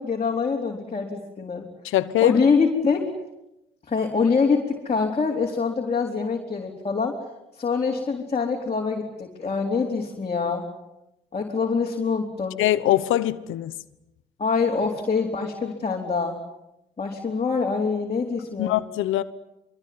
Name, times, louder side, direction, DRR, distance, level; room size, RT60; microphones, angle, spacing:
voice 1, 0.0-1.6 2.2-3.1 3.9-7.2 7.6-10.6 11.3-12.6 14.4-16.4 17.0-18.8, left 5 dB, 30° left, 4.1 m, -24 dB
voice 2, 1.8-2.4 12.6-13.7 18.6-19.2, left 14 dB, 90° left, 1.1 m, -22 dB
24.5 x 23.0 x 9.6 m
cardioid pair, 90°, 20 cm